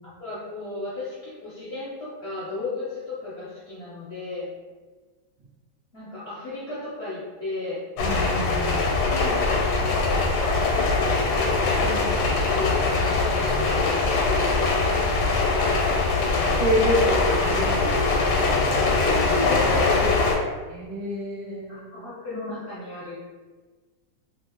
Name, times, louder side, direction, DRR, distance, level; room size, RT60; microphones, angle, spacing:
voice 1, 0.2-4.5 5.9-7.8 9.0-10.2 11.8-14.7 18.8-20.2 21.7-23.2, left 2 dB, 60° left, -9 dB, 0.7 m, -34 dB
sound 1, 8.0-20.3, left 3 dB, 80° left, 1.2 m, -22 dB
voice 2, 8.0-8.9 14.6-15.1 16.4-19.0 20.6-21.9, equal, 70° right, -3 dB, 1.1 m, -29 dB
2.9 x 2.6 x 2.9 m, 1.4 s
omnidirectional pair, 1.9 m